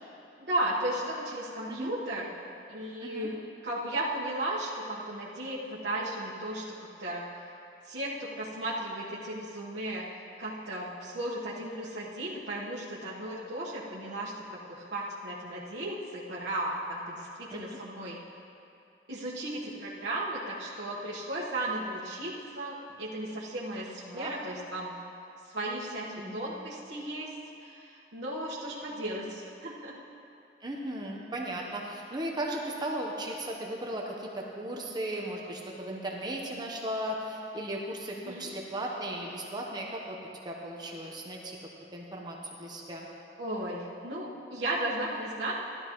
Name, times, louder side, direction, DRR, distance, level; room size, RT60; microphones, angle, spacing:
voice 1, 0.4-2.4 2.7-3.4 3.6-7.3 7.8-10.1 10.4-18.2 19.1-24.9 25.4-27.4 27.6-30.0 38.2-38.5 43.4-45.5, right 1 dB, 75° right, -8 dB, 1.4 m, -35 dB
voice 2, 26.1-26.4 30.6-40.2 40.4-41.6 41.9-43.1, right 1 dB, 25° right, -1 dB, 1.0 m, -36 dB
16.0 x 12.0 x 3.1 m, 2.7 s
head